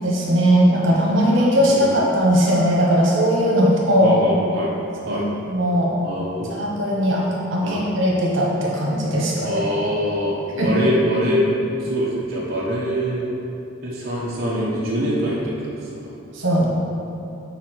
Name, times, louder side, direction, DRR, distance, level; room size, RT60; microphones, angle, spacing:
voice 1, 0.0-4.2 5.0-5.9 6.5-9.6 10.6-10.8 16.3-16.7, equal, 75° right, -4 dB, 1.3 m, -19 dB
voice 2, 1.7-2.2 4.0-4.7 5.1-5.2 6.0-6.5 7.6-7.9 9.4-11.5 11.8-13.2 13.8-16.0, equal, 50° right, -7 dB, 1.2 m, -24 dB
7.1 x 4.8 x 4.6 m, 2.8 s
head